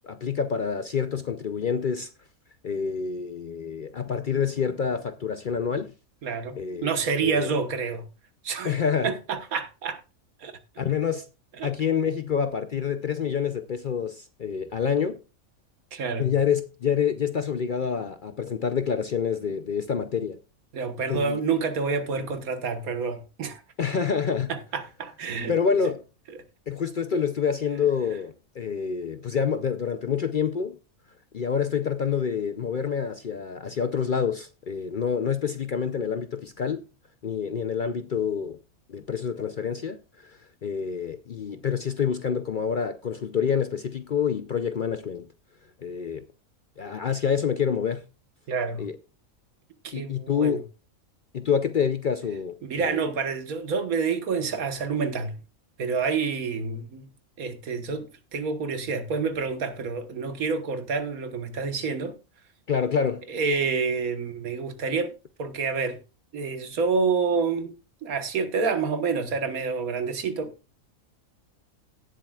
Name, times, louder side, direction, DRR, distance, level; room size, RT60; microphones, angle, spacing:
voice 1, 0.0-2.1 2.6-5.9 6.5-6.9 7.2-7.5 8.6-9.1 10.8-11.3 11.6-15.2 16.2-20.4 21.1-21.4 23.8-24.5 25.5-26.0 26.7-30.8 31.3-36.8 37.2-38.6 38.9-45.3 45.8-46.2 46.8-48.0 48.8-49.0 49.9-50.7 51.3-53.0 62.7-63.2, left 7 dB, 55° left, 0.6 m, -27 dB
voice 2, 6.2-8.1 8.4-8.8 9.0-10.0 10.4-10.6 11.6-11.7 15.9-16.3 20.7-23.6 24.5-25.5 48.5-48.9 49.8-50.6 52.6-55.4 55.8-57.1 57.4-62.1 63.3-65.1 65.4-66.0 66.3-67.7 68.0-70.5, right 5 dB, 85° right, 1.7 m, -28 dB
17.5 x 7.4 x 2.4 m
omnidirectional pair, 1.5 m